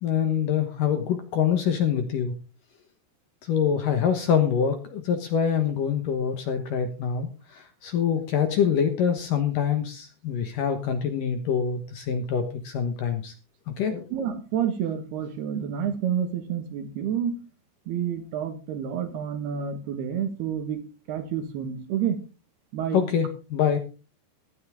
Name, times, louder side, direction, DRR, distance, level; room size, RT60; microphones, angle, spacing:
voice 1, 0.0-2.3 3.4-13.3 13.7-14.1 22.9-23.8, left 8 dB, 65° left, 7 dB, 2.3 m, -25 dB
voice 2, 14.1-17.4 17.9-20.8 21.1-22.2 22.7-23.0, right 8 dB, 65° right, 9 dB, 3.3 m, -29 dB
15.5 x 12.0 x 3.7 m, 0.33 s
omnidirectional pair, 5.2 m